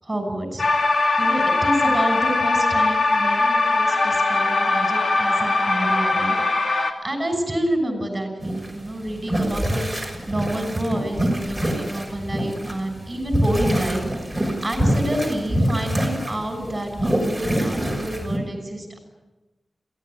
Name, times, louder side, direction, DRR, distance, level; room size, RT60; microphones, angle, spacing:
voice 1, 0.0-0.6 1.2-9.9 10.3-19.0, right 1 dB, 25° right, 4 dB, 6.3 m, -28 dB
sound 1, 0.6-6.9, left 3 dB, 55° left, 2.5 m, -20 dB
sound 2, 8.4-18.4, equal, 5° right, 6.2 m, -25 dB
23.0 x 16.5 x 10.0 m, 1.1 s
wide cardioid pair, 70°, 0 cm